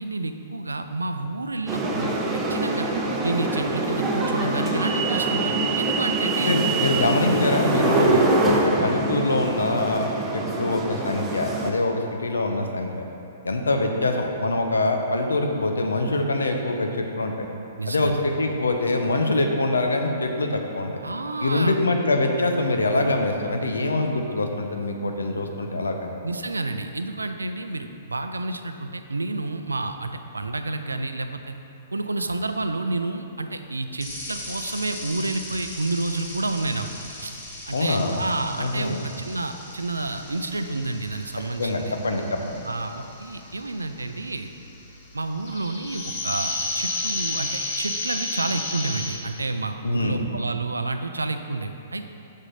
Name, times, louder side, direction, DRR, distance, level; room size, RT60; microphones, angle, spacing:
voice 1, 0.0-2.2 2.5-2.9 3.2-6.5 17.8-18.2 21.0-21.8 26.2-31.5 31.9-36.9 37.2-37.3 37.7-41.9 42.6-44.5 45.1-52.0, right 2 dB, 90° right, 7 dB, 0.4 m, -30 dB
sound 1, 1.7-11.7, right 2 dB, 15° right, 0.9 m, -24 dB
voice 2, 6.4-10.1 10.3-13.0 13.4-17.3 17.8-21.0 21.4-26.1 37.7-38.2 38.6-39.0 41.6-42.6 49.8-50.3, left 2 dB, 80° left, 3 dB, 0.8 m, -24 dB
sound 2, 34.0-49.1, left 2 dB, 45° left, 1.8 m, -34 dB
6.5 x 5.0 x 5.7 m, 2.7 s
figure-of-eight pair, 115°, 0 cm